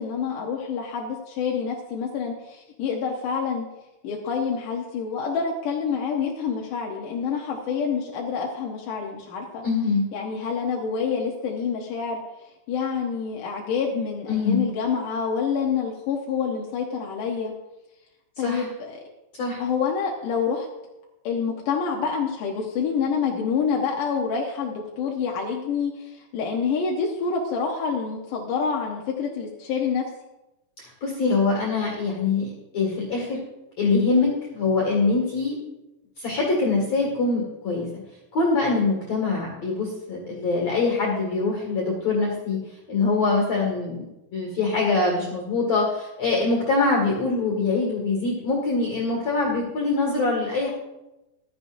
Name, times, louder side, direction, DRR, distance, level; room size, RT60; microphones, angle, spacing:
voice 1, 0.0-3.7 4.0-9.7 10.1-12.2 12.7-17.5 18.4-19.0 19.6-20.7 21.2-30.1, left 6 dB, 70° left, -1 dB, 2.3 m, -27 dB
voice 2, 9.6-10.1 14.3-14.7 18.4-18.6 19.4-19.6 30.8-33.4 33.8-35.6 36.2-37.9 38.3-42.6 42.9-44.1 44.3-50.7, left 3 dB, 45° left, -2 dB, 2.8 m, -24 dB
15.0 x 12.0 x 2.6 m, 0.96 s
omnidirectional pair, 4.6 m